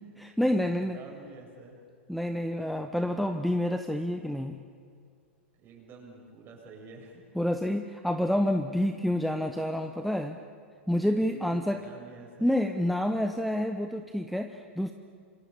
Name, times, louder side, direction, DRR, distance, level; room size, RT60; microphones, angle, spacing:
voice 1, 0.2-1.0 2.1-4.6 7.3-10.4 10.9-11.8 12.4-14.9, left 1 dB, ahead, 7 dB, 1.1 m, -28 dB
voice 2, 0.8-1.8 5.5-7.2 8.8-8.9 10.9-11.0 11.3-12.5, right 4 dB, 30° right, 0 dB, 7.9 m, -49 dB
27.5 x 25.0 x 7.4 m, 2.2 s
figure-of-eight pair, 105°, 7 cm